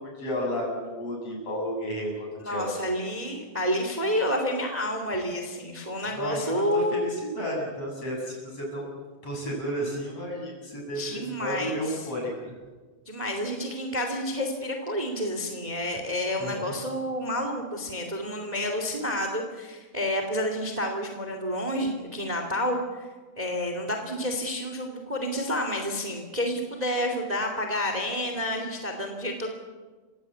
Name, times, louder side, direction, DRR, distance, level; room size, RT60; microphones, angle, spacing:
voice 1, 0.0-2.8 6.2-9.0 9.2-12.5 16.4-16.6, equal, 55° left, -1 dB, 8.6 m, -32 dB
voice 2, 2.4-7.1 10.9-11.7 13.1-23.1 23.4-29.5, left 1 dB, 15° right, 4 dB, 2.4 m, -29 dB
28.5 x 16.5 x 8.4 m, 1.4 s
omnidirectional pair, 3.3 m